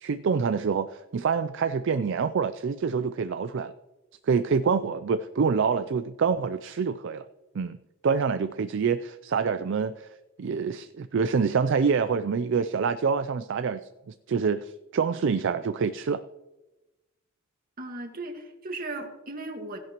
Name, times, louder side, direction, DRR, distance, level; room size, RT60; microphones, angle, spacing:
voice 1, 0.0-3.7 4.2-7.2 7.5-7.8 8.0-10.1 10.4-16.2, right 5 dB, 65° right, 12 dB, 0.4 m, -26 dB
voice 2, 17.8-19.8, right 2 dB, 45° right, 4 dB, 1.7 m, -36 dB
16.0 x 11.0 x 3.0 m, 1.0 s
head